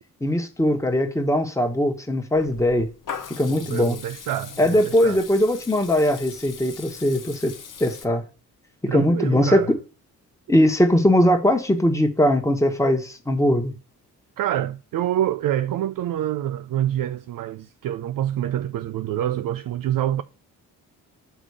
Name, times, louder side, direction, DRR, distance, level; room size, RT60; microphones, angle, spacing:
voice 1, 0.2-2.9 3.4-4.0 4.6-7.5 7.8-8.2 8.9-9.8 10.5-13.7, left 1 dB, 10° left, 1.4 m, -20 dB
Water tap faucet / Liquid, 2.3-8.0, left 6 dB, 55° left, 1.0 m, -40 dB
voice 2, 3.4-5.2 8.9-9.7 14.4-20.2, right 12 dB, 60° right, 0.4 m, -26 dB
7.1 x 3.6 x 4.7 m
supercardioid pair, 45°, 39 cm